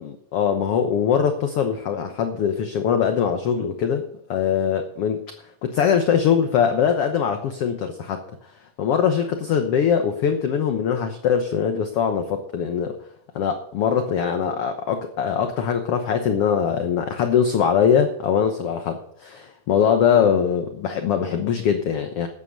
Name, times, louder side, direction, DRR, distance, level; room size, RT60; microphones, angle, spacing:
voice 1, 0.0-4.0 4.3-5.3 5.6-8.2 8.8-13.0 13.3-19.0 19.2-22.3, left 7 dB, 65° left, 6 dB, 1.6 m, -22 dB
13.0 x 9.1 x 6.7 m, 0.67 s
omnidirectional pair, 3.7 m